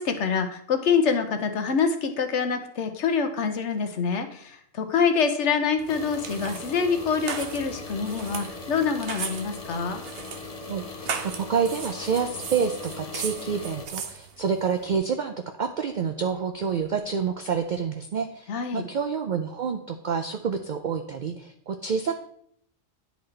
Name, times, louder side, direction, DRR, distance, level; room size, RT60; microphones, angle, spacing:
voice 1, 0.0-10.0 18.5-18.8, left 6 dB, 65° left, 7 dB, 1.0 m, -26 dB
sound 1, 5.8-15.0, right 6 dB, 55° right, 0.8 m, -38 dB
sound 2, 5.9-13.9, left 3 dB, 35° left, 0.7 m, -39 dB
voice 2, 10.7-11.1 11.5-22.1, right 6 dB, 80° right, 6 dB, 0.4 m, -28 dB
10.0 x 4.0 x 3.2 m, 0.66 s
omnidirectional pair, 1.4 m